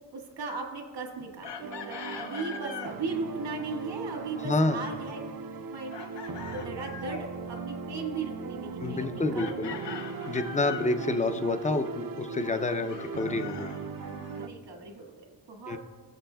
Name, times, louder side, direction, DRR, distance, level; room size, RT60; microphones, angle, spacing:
voice 1, 0.1-5.2 5.7-9.8 14.3-15.8, right 4 dB, 85° right, 2 dB, 1.7 m, -38 dB
Chicken rooster, 1.4-3.0 5.9-7.3 9.4-11.0 12.9-14.4, left 7 dB, 75° left, 0.8 m, -41 dB
sound 1, 1.6-14.5, right 4 dB, 55° right, 0.5 m, -38 dB
voice 2, 4.4-4.9 8.8-9.7 10.3-13.7 15.7-15.8, left 2 dB, 20° left, 8 dB, 0.4 m, -28 dB
20.0 x 7.0 x 2.2 m, 1.5 s
wide cardioid pair, 145°, 43 cm